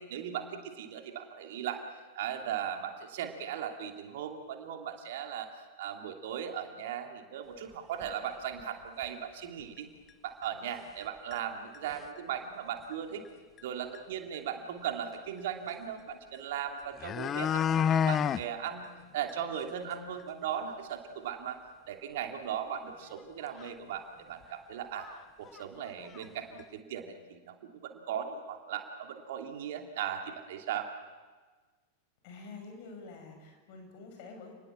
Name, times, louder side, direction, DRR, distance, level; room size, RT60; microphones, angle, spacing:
voice 1, 0.0-1.8 2.1-9.9 10.2-13.2 13.6-21.6 21.9-25.1 25.4-27.5 27.8-30.9, right 9 dB, 55° right, 4 dB, 2.7 m, -38 dB
sound 1, 8.0-8.1 8.6-8.7 9.0-9.1 10.1-10.2 10.7-11.0 11.3-11.4 11.7-12.2 13.6-13.7 13.9-14.0 16.3-16.4 16.8-18.4 18.8-18.9 19.3-19.4 19.8-19.9 20.2-20.3 23.1-23.2 23.6-23.7 24.4-24.5 25.0-25.2 25.4-26.2 26.6-26.7, left 8 dB, 25° left, 0.8 m, -30 dB
voice 2, 32.2-34.5, left 3 dB, 45° left, 3 dB, 7.3 m, -47 dB
29.5 x 20.5 x 7.3 m, 1.3 s
figure-of-eight pair, 90°, 0 cm